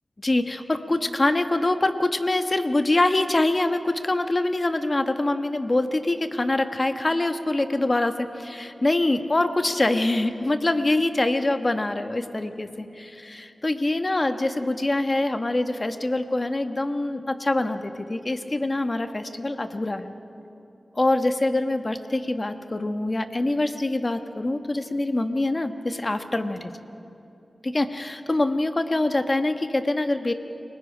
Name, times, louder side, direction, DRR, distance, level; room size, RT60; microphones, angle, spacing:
voice 1, 0.2-20.1 20.9-26.7 27.6-30.3, left 2 dB, 40° left, 8 dB, 1.2 m, -24 dB
29.5 x 19.5 x 5.1 m, 2.8 s
cardioid pair, 50°, 0 cm